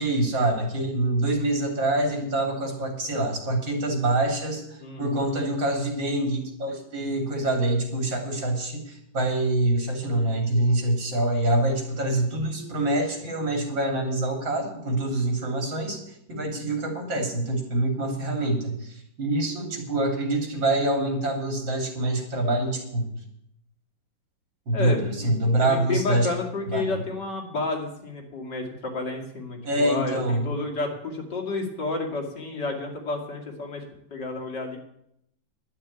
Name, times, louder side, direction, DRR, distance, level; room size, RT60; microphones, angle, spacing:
voice 1, 0.0-16.0 16.3-23.1 24.7-26.3 26.7-27.0 29.6-30.5, right 1 dB, 85° right, 2 dB, 3.8 m, -25 dB
voice 2, 4.8-5.3 24.7-25.3 25.6-33.8 34.1-34.8, left 3 dB, 65° left, 2 dB, 3.0 m, -31 dB
11.5 x 8.8 x 8.9 m, 0.75 s
omnidirectional pair, 2.0 m